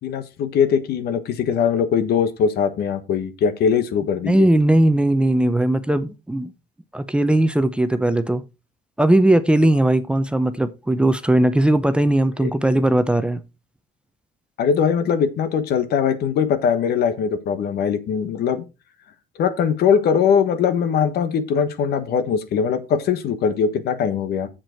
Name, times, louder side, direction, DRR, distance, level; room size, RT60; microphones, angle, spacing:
voice 1, 0.0-4.5 12.4-12.5 14.6-18.6 19.4-24.5, left 7 dB, 70° left, 1.3 m, -21 dB
voice 2, 4.3-6.5 6.9-8.4 9.0-13.4, right 1 dB, 5° right, 0.7 m, -18 dB
7.6 x 7.5 x 4.4 m
cardioid pair, 110°, 17 cm